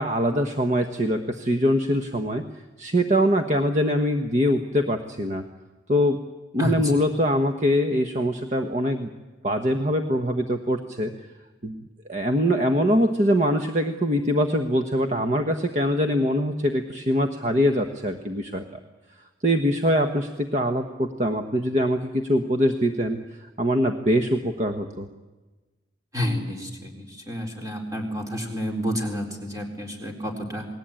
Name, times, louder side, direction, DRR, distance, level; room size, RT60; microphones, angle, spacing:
voice 1, 0.0-2.4 2.8-5.4 5.9-6.2 6.5-9.1 9.4-11.1 11.6-11.8 12.1-18.6 19.4-25.1, equal, 35° right, 6 dB, 1.2 m, -23 dB
voice 2, 26.1-30.7, equal, 20° right, 2 dB, 4.0 m, -30 dB
28.5 x 20.0 x 9.0 m, 1.2 s
head